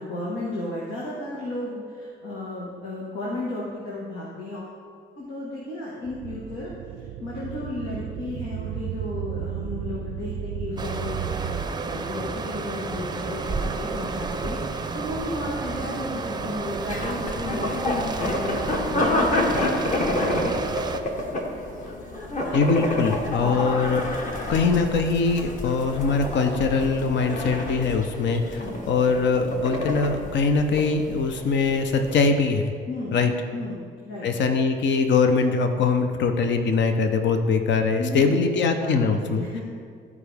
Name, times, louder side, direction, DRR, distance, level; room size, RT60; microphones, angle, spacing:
voice 1, 0.0-4.8 5.2-6.7 7.0-20.6 28.5-28.8 32.9-33.2 33.5-34.3 38.0-39.6, left 2 dB, 85° left, -6 dB, 1.6 m, -34 dB
sound 1, 6.1-11.7, right 10 dB, 70° right, 0.4 m, -33 dB
sound 2, 10.8-21.0, right 4 dB, 20° right, 0.5 m, -31 dB
sound 3, 16.9-32.2, left 1 dB, 40° left, 1.4 m, -29 dB
voice 2, 22.5-24.1 24.5-28.6 28.9-32.7 33.1-33.3 34.2-39.5, left 4 dB, 65° left, 6 dB, 0.8 m, -22 dB
13.5 x 4.8 x 3.5 m, 2.1 s
cardioid pair, 90°, 20 cm